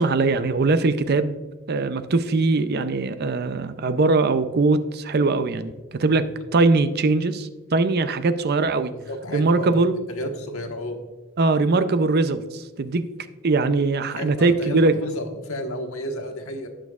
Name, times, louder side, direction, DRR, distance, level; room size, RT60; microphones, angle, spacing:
voice 1, 0.0-1.4 1.7-5.7 6.0-6.2 6.5-8.9 9.3-10.0 11.4-13.1 13.4-14.9, right 3 dB, 50° right, 11 dB, 0.5 m, -21 dB
voice 2, 8.9-9.8 10.1-11.0 14.1-16.7, left 1 dB, 80° left, 4 dB, 1.3 m, -32 dB
17.5 x 6.3 x 2.4 m, 1.2 s
head